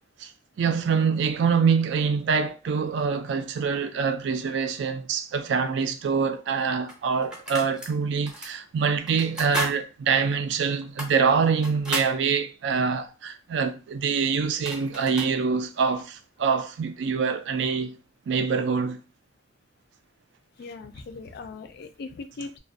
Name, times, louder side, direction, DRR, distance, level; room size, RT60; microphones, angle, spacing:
voice 1, 0.6-18.0 18.3-19.0, right 5 dB, 70° right, 0.3 m, -25 dB
sound 1, 6.1-6.2 6.9-7.9 8.3-8.5 9.1-9.8 10.1-10.2 10.8-12.2 14.1-14.2 14.5-15.4, equal, 5° right, 0.6 m, -34 dB
voice 2, 20.6-22.6, left 3 dB, 60° left, 0.3 m, -39 dB
2.4 x 2.1 x 2.5 m
head